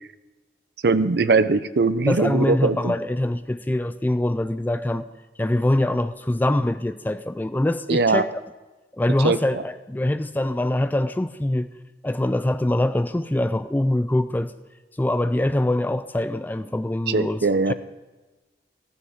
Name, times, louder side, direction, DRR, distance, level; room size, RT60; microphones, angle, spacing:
voice 1, 0.8-2.9 7.9-8.2 9.2-9.6 17.1-17.7, right 4 dB, 60° right, 14 dB, 0.5 m, -21 dB
voice 2, 2.1-5.1 5.4-8.3 8.9-11.7 12.0-14.5 15.0-17.7, left 1 dB, 10° left, 11 dB, 0.3 m, -24 dB
15.0 x 14.0 x 3.6 m, 1.2 s
head